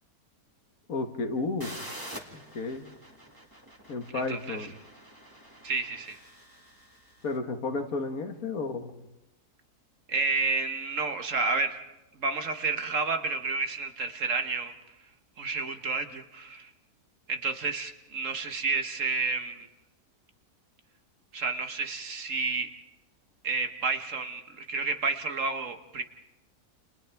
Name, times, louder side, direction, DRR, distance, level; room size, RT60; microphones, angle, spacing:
voice 1, 0.9-1.7 2.3-2.9 3.9-4.7 7.2-8.9, left 3 dB, 60° left, 6 dB, 1.8 m, -32 dB
sound 1, 1.6-7.3, right 1 dB, 15° right, 2.1 m, -46 dB
voice 2, 4.1-4.6 5.6-6.2 10.1-11.8 12.2-14.7 15.4-16.7 17.3-19.7 21.3-22.7 23.4-26.0, right 4 dB, 55° right, 6 dB, 1.5 m, -30 dB
29.5 x 29.5 x 3.5 m, 0.95 s
omnidirectional pair, 1.7 m